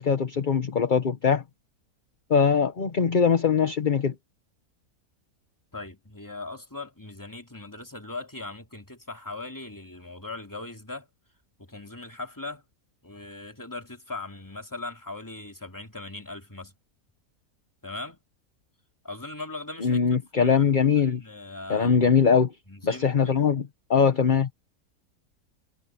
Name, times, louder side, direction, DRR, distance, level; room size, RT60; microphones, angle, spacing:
voice 1, 0.0-1.4 2.3-4.1 19.8-21.2 21.7-22.5 22.8-24.5, left 6 dB, 35° left, 1.1 m, -22 dB
voice 2, 5.7-11.1 11.6-12.6 13.0-16.7 17.8-18.2 19.0-20.0 20.3-20.7 21.0-22.2 22.7-23.5, left 2 dB, 10° left, 2.8 m, -39 dB
omnidirectional pair, 1.5 m